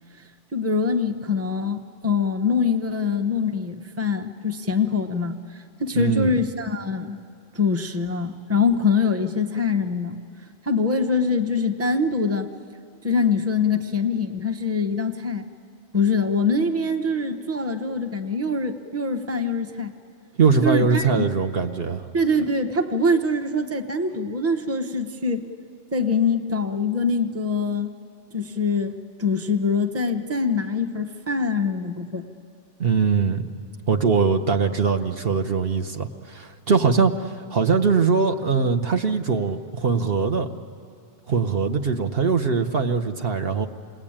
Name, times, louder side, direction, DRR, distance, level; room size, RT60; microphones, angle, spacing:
voice 1, 0.5-7.2 7.5-10.2 10.6-12.5 13.0-15.4 15.9-19.9 20.6-21.1 22.1-25.4 25.9-27.9 28.3-28.9 29.2-32.2, left 4 dB, 15° right, 6 dB, 0.9 m, -24 dB
voice 2, 5.9-6.3 20.4-22.0 32.8-33.4 33.9-40.5 41.3-43.7, right 5 dB, 55° right, 6 dB, 1.1 m, -21 dB
28.0 x 20.5 x 8.8 m, 2.4 s
omnidirectional pair, 1.2 m